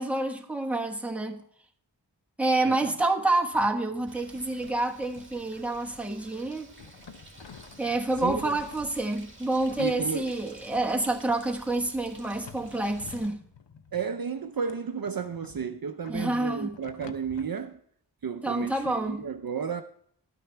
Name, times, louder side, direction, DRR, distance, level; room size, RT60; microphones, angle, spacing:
voice 1, 0.0-1.4 2.4-6.7 7.8-13.4 16.1-16.8 18.4-19.2, right 2 dB, 5° right, 1.3 m, -28 dB
sound 1, 3.5-4.5 4.7-4.9 5.2-6.2 6.8-9.2 9.8-10.6 11.3-11.4 12.2-14.2 14.7-17.5, left 6 dB, 80° left, 0.8 m, -50 dB
Bird, 4.1-13.3, right 2 dB, 25° right, 1.8 m, -50 dB
voice 2, 8.2-8.6 9.8-10.3 13.9-17.8 18.2-19.8, right 6 dB, 55° right, 0.6 m, -32 dB
12.0 x 9.1 x 3.3 m
wide cardioid pair, 50°, 43 cm